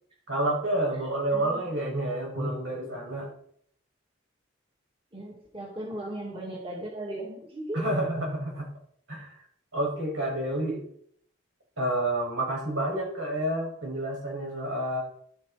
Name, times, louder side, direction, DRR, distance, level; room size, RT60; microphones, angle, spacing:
voice 1, 0.3-3.3 7.7-8.7 9.1-9.4 9.7-10.8 11.8-15.0, right 1 dB, 85° right, -1 dB, 6.3 m, -29 dB
voice 2, 1.3-1.6 2.3-2.6 5.1-7.8, right 1 dB, 25° right, -1 dB, 2.5 m, -36 dB
12.0 x 11.5 x 4.3 m, 0.64 s
head